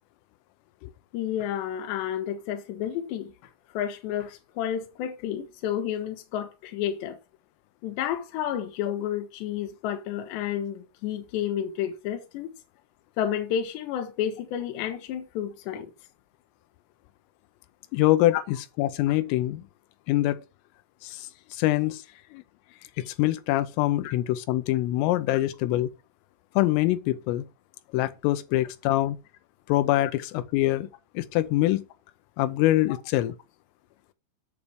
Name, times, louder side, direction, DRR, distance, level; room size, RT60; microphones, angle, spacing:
voice 1, 1.1-3.3 3.7-7.2 7.8-12.5 13.2-15.9 18.3-18.4 24.0-24.1 25.3-25.4, left 10 dB, 70° left, 3.3 m, -31 dB
voice 2, 17.9-19.6 20.1-20.4 21.0-22.0 22.3-22.4 23.0-25.9 26.6-27.5 27.9-29.2 29.7-30.9 31.2-31.8 32.4-33.3, left 15 dB, 90° left, 3.4 m, -24 dB
8.6 x 7.0 x 6.3 m
omnidirectional pair, 5.7 m